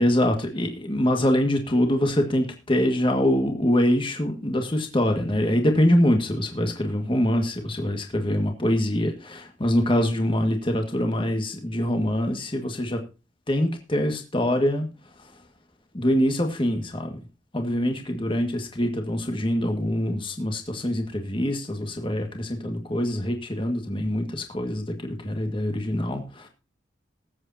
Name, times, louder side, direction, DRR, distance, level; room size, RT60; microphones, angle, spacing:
voice 1, 0.0-13.0 13.5-15.4 15.9-17.3 17.5-26.5, left 1 dB, 25° left, 4 dB, 1.8 m, -24 dB
20.5 x 8.1 x 2.8 m, 0.30 s
head